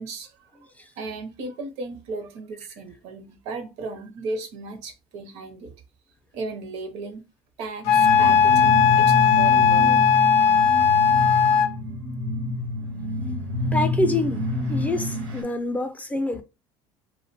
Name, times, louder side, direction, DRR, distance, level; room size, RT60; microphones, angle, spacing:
voice 1, 0.0-5.7 6.3-7.2 7.6-10.0, right 3 dB, 70° right, 0.6 m, -36 dB
sound 1, 7.8-15.4, left 1 dB, 90° right, 1.0 m, -28 dB
Wind instrument woodwind instrument, 7.9-11.7, left 7 dB, 80° left, 0.4 m, -17 dB
voice 2, 13.7-16.4, left 2 dB, 10° left, 0.4 m, -26 dB
2.4 x 2.1 x 2.7 m
supercardioid pair, 100°, 12 cm